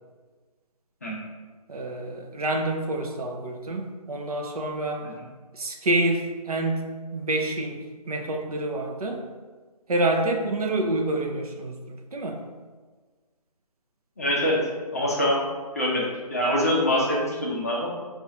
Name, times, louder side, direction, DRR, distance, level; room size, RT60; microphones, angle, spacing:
voice 1, 1.7-5.1 5.5-9.2 9.9-12.4, right 2 dB, 65° right, 2 dB, 0.6 m, -27 dB
voice 2, 14.2-14.7 14.9-15.4 15.7-17.9, left 1 dB, 25° left, -4 dB, 0.5 m, -24 dB
3.6 x 2.4 x 4.0 m, 1.4 s
figure-of-eight pair, 160°, 21 cm